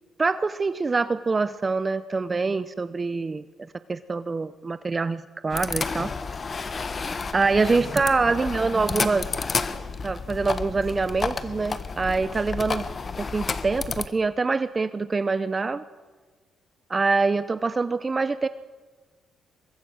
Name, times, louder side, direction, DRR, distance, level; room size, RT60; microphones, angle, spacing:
voice 1, 0.2-3.4 3.9-6.1 7.3-9.3 10.0-12.9 13.2-15.8 16.9-18.5, right 4 dB, 30° right, 13 dB, 0.6 m, -25 dB
sound 1, 5.5-14.1, left 4 dB, 35° left, 1.2 m, -31 dB
23.5 x 21.5 x 6.4 m, 1.5 s
cardioid pair, 90°, 0 cm